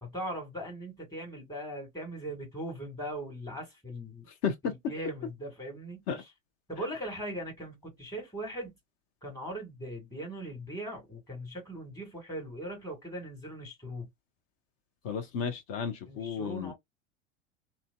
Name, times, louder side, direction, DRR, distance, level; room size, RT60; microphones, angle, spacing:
voice 1, 0.0-4.3 4.6-6.3 6.7-8.8 9.2-14.1 16.0-16.7, right 1 dB, 10° left, 1.6 m, -40 dB
voice 2, 15.0-16.7, left 6 dB, 40° left, 0.8 m, -33 dB
2.6 x 2.2 x 2.2 m
figure-of-eight pair, 90°, 37 cm